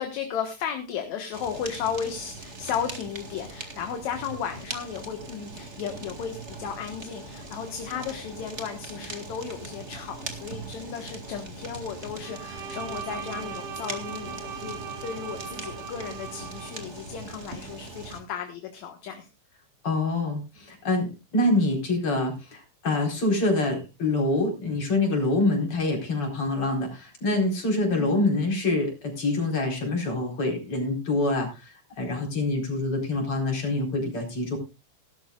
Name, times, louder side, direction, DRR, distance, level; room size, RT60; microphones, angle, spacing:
voice 1, 0.0-19.3 27.8-28.3, left 7 dB, 65° left, 5 dB, 2.6 m, -34 dB
Fire, 1.3-18.2, right 2 dB, 25° right, 1.8 m, -40 dB
Bowed string instrument, 12.2-16.9, right 7 dB, 80° right, 2.9 m, -39 dB
voice 2, 19.8-34.6, left 2 dB, 40° left, 2 dB, 5.2 m, -26 dB
18.5 x 12.0 x 2.4 m, 0.28 s
omnidirectional pair, 3.7 m